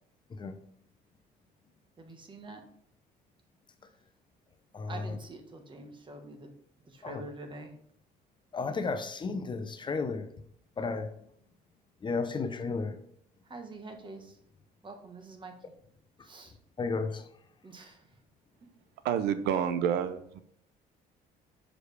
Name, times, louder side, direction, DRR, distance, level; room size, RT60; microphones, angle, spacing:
voice 1, 2.0-2.6 4.9-6.5 6.8-7.7 13.4-14.4 14.8-15.6 16.2-16.6 17.6-18.2, right 2 dB, 30° right, 1.2 m, -46 dB
voice 2, 4.7-5.2 7.0-7.2 8.5-10.3 10.8-11.1 12.0-12.9 16.8-17.2, left 4 dB, 30° left, 0.6 m, -33 dB
voice 3, 19.0-20.4, right 8 dB, 80° right, 0.5 m, -29 dB
6.3 x 5.1 x 3.3 m
cardioid pair, 110°, 17 cm